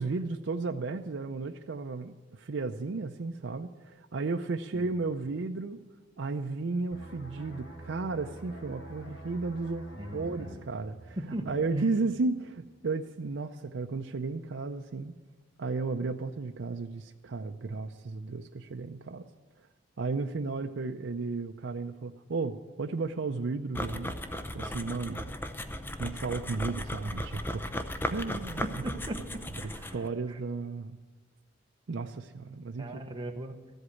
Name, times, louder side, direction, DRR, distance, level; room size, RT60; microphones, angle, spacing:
voice 1, 0.0-5.8 6.2-11.2 11.4-15.1 15.6-19.3 20.0-25.3 26.0-27.7 28.1-28.6 29.9-31.0 31.9-33.0, right 3 dB, 75° right, 5 dB, 0.5 m, -34 dB
sound 1, 6.9-12.3 12.6-12.9, right 1 dB, 90° left, 2.8 m, -47 dB
voice 2, 10.0-10.7 11.2-11.5 28.8-29.2 29.6-30.4 32.8-33.6, right 1 dB, 25° right, 3 dB, 1.0 m, -39 dB
sound 2, 23.7-30.1, left 1 dB, 10° left, 0.6 m, -36 dB
14.0 x 8.0 x 8.4 m, 1.3 s
head